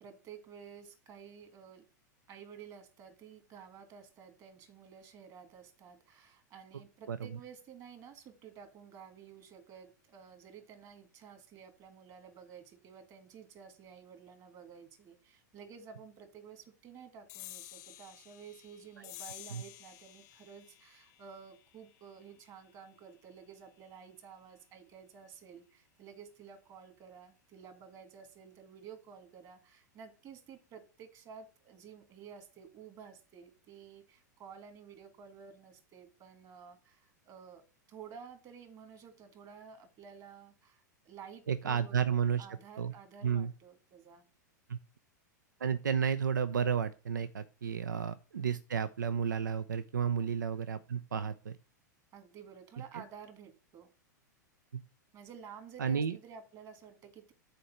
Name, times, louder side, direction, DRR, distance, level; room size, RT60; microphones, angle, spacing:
voice 1, 0.0-1.9 2.3-44.3 50.2-50.3 52.1-53.9 55.1-57.3, right 7 dB, 40° right, 8 dB, 2.0 m, -52 dB
sound 1, 17.3-24.1, left 15 dB, 60° left, 0.8 m, -53 dB
voice 2, 41.5-42.5 42.8-42.9 43.2-43.5 44.7-44.8 45.6-51.6 52.9-53.0 55.8-56.2, right 7 dB, 85° right, 14 dB, 0.4 m, -32 dB
7.8 x 4.4 x 5.7 m, 0.34 s
hypercardioid pair, 100°, 10 cm